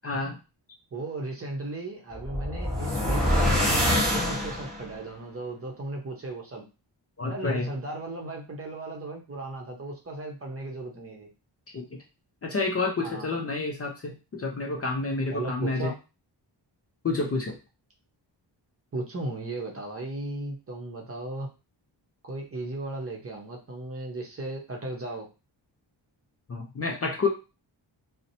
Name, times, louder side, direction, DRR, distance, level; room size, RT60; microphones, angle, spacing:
voice 1, 0.0-0.4 7.2-7.7 11.7-12.0 12.4-15.9 17.0-17.6 26.5-27.3, left 3 dB, 35° left, 0 dB, 0.5 m, -29 dB
voice 2, 0.9-6.6 7.3-11.3 13.0-13.4 15.3-16.0 18.9-21.5 22.2-25.3, right 2 dB, 30° right, 1 dB, 0.7 m, -36 dB
sound 1, 2.1-4.9, left 1 dB, ahead, 0.9 m, -25 dB
2.8 x 2.1 x 2.6 m, 0.30 s
wide cardioid pair, 100°, 45 cm